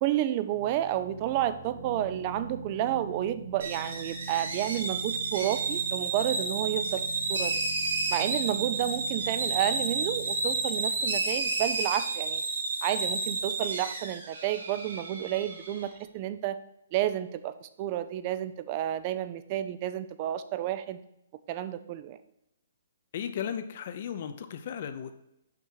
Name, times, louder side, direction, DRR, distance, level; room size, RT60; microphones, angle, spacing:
voice 1, 0.0-7.0 7.3-7.6 8.1-12.4 12.8-16.6 16.9-21.0 21.5-22.2, right 12 dB, 30° right, 12 dB, 0.4 m, -31 dB
sound 1, 0.5-12.0, right 3 dB, 50° right, 1.4 m, -43 dB
sound 2, 3.6-15.8, right 3 dB, 80° right, 1.7 m, -31 dB
voice 2, 23.1-25.1, left 8 dB, 45° left, 10 dB, 0.6 m, -35 dB
5.9 x 5.5 x 4.6 m, 0.81 s
hypercardioid pair, 165°, 0 cm